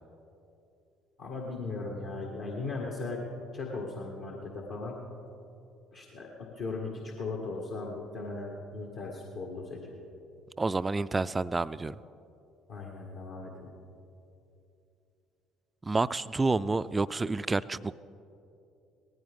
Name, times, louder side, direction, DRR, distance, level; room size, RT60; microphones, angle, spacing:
voice 1, 1.2-3.2 3.5-5.0 5.9-10.0 12.7-13.7, left 3 dB, 60° left, -2 dB, 1.7 m, -38 dB
voice 2, 10.6-12.0 15.8-18.0, right 3 dB, 20° right, 16 dB, 0.4 m, -29 dB
18.5 x 15.0 x 3.6 m, 2.8 s
hypercardioid pair, 55°, 0 cm